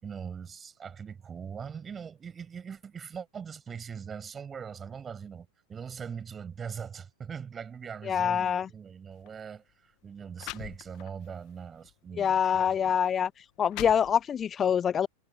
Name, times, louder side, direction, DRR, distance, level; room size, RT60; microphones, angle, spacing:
voice 1, 0.0-13.0, right 7 dB, 20° right, 7.5 m, -41 dB
voice 2, 8.0-8.7 12.2-13.3 13.6-15.1, left 8 dB, 25° left, 0.4 m, -25 dB
sound 1, 9.1-9.3 10.0-10.1 10.4-11.3 11.8-12.0 12.8-12.9 13.4-14.5, left 23 dB, 40° left, 1.9 m, -42 dB
figure-of-eight pair, 90°, 0 cm